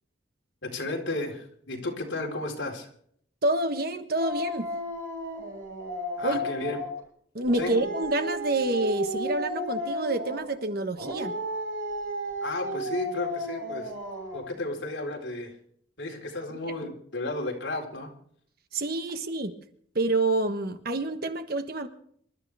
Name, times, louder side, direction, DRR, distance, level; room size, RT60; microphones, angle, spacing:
voice 1, 0.6-2.9 6.2-6.8 7.5-7.7 12.4-13.9 14.3-15.5 16.0-18.1, left 2 dB, 65° left, 0 dB, 4.3 m, -33 dB
voice 2, 3.4-4.7 6.2-6.5 7.3-11.3 16.6-16.8 18.7-19.5 19.9-21.9, right 2 dB, 50° right, 8 dB, 1.3 m, -28 dB
Dog, 4.2-7.0 7.4-10.5 11.0-14.5, equal, 85° right, 7.1 m, -33 dB
27.0 x 13.0 x 3.5 m, 0.63 s
head